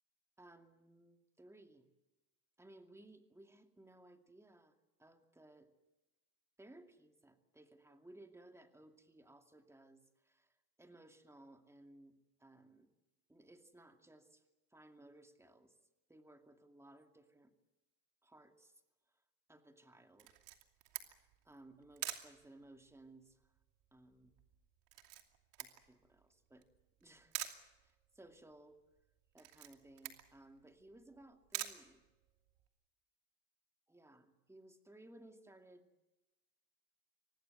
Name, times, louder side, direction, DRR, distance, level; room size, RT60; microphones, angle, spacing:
voice 1, 0.4-1.9 2.6-5.7 6.6-12.9 13.3-14.4 14.7-15.7 16.1-17.5 18.2-18.8 19.5-20.4 21.1-23.5 23.9-24.3 25.6-26.7 27.0-27.4 27.8-28.8 29.3-32.0 33.9-35.8, right 1 dB, 5° right, 5 dB, 2.5 m, -61 dB
Camera, 20.2-32.7, right 15 dB, 65° right, 2.8 m, -49 dB
25.0 x 18.5 x 8.1 m, 1.0 s
supercardioid pair, 105°, 46 cm